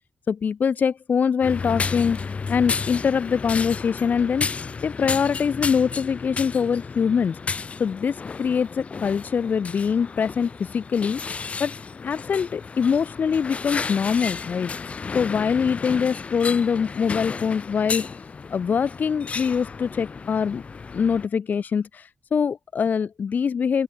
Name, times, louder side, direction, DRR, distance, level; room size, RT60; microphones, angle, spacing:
voice 1, 0.3-11.2 11.6-11.8 12.0-18.0 18.5-20.6 20.9-23.8, left 6 dB, 55° left, 1.8 m, -24 dB
sound 1, 1.4-21.3, left 5 dB, 35° left, 1.6 m, -32 dB
open air
wide cardioid pair, 165°, 4 cm